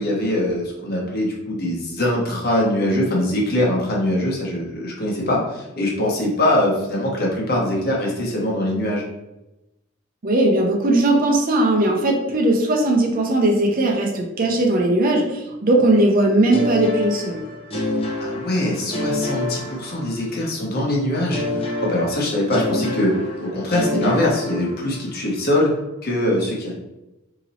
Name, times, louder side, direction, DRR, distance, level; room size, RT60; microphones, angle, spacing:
voice 1, 0.0-9.0 18.2-23.1 23.4-25.7 26.0-26.7, left 1 dB, 50° left, -2 dB, 1.0 m, -22 dB
voice 2, 10.2-17.4, right 1 dB, 45° right, 0 dB, 0.6 m, -18 dB
sound 1, 16.5-20.4 21.3-25.2, left 2 dB, 30° left, 0.7 m, -27 dB
2.9 x 2.8 x 4.0 m, 0.95 s
head